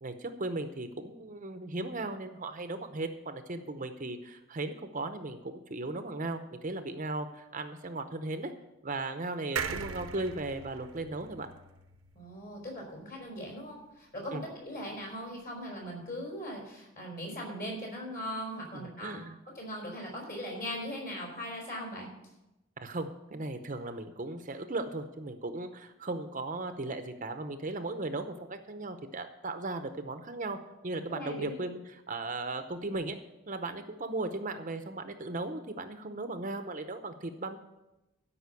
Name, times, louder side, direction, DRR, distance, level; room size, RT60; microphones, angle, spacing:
voice 1, 0.0-8.5 8.8-11.5 14.3-14.4 18.7-19.4 22.8-30.6 30.8-33.2 33.5-37.6, right 2 dB, 35° right, 8 dB, 0.7 m, -37 dB
sound 1, 9.6-13.0 13.4-13.5 13.7-13.8, right 6 dB, 85° right, 0.8 m, -40 dB
voice 2, 12.1-19.2 19.5-22.1 31.1-31.6, equal, 45° left, -2 dB, 4.6 m, -39 dB
13.0 x 5.6 x 8.2 m, 0.96 s
head